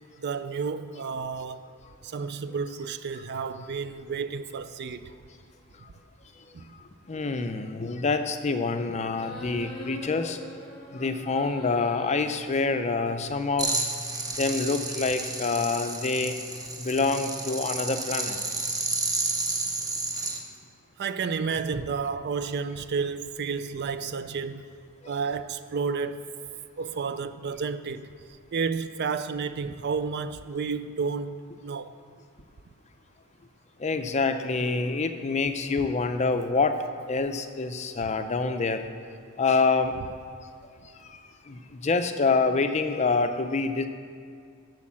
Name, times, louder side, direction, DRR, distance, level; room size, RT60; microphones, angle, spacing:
voice 1, 0.2-1.6 2.0-5.1 6.5-6.7 21.0-24.6 25.1-26.3 26.8-28.1 28.5-31.9, right 5 dB, 50° right, 0.4 m, -31 dB
voice 2, 7.1-10.4 10.9-13.7 14.4-16.4 16.8-18.4 25.0-25.1 33.8-36.8 37.1-38.8 39.4-39.9 41.1-43.9, left 4 dB, 30° left, 0.5 m, -26 dB
sound 1, 9.1-12.1, left 1 dB, ahead, 2.6 m, -43 dB
sound 2, 13.6-20.4, right 2 dB, 15° right, 0.9 m, -31 dB
8.5 x 6.4 x 7.4 m
head